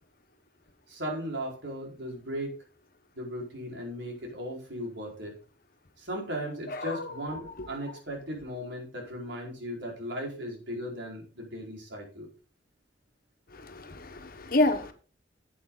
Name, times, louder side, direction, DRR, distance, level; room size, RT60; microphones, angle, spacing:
voice 1, 0.9-2.6 3.1-5.3 6.0-12.3, equal, 85° right, 4.7 m, -37 dB
voice 2, 6.7-7.1 7.5-7.7 13.5-14.9, left 2 dB, 55° left, 1.3 m, -29 dB
11.0 x 8.5 x 3.9 m
head